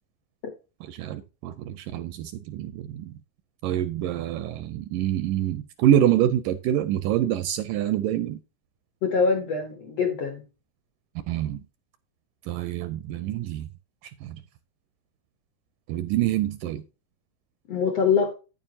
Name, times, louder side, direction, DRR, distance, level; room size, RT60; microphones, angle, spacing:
voice 1, 0.8-3.1 3.6-8.4 11.3-11.6 12.4-13.7 14.0-14.4 15.9-16.8, right 11 dB, 85° right, 1.9 m, -26 dB
voice 2, 9.0-10.4 17.7-18.3, left 5 dB, 75° left, 1.4 m, -24 dB
9.3 x 9.0 x 2.7 m
omnidirectional pair, 4.2 m